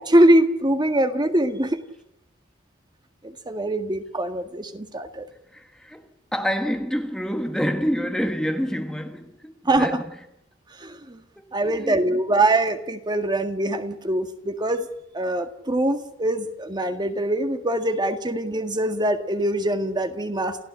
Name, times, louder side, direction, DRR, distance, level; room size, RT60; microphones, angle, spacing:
voice 1, 0.0-1.8 3.2-5.3 9.7-10.0 10.8-11.2 11.5-14.9 15.1-20.7, right 1 dB, 20° right, 1.8 m, -23 dB
voice 2, 5.5-10.1 11.4-12.2, equal, 5° left, 1.4 m, -28 dB
28.5 x 16.0 x 8.7 m
head